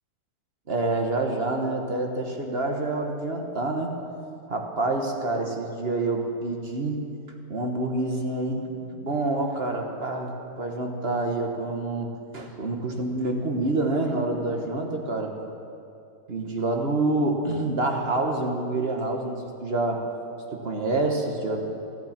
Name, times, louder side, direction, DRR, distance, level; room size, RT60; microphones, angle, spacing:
voice 1, 0.7-3.9 4.5-7.0 7.5-10.3 10.6-12.1 12.3-15.3 16.3-20.0 20.5-21.7, right 2 dB, 45° right, 2 dB, 1.5 m, -27 dB
14.0 x 10.5 x 7.4 m, 2.6 s
omnidirectional pair, 1.6 m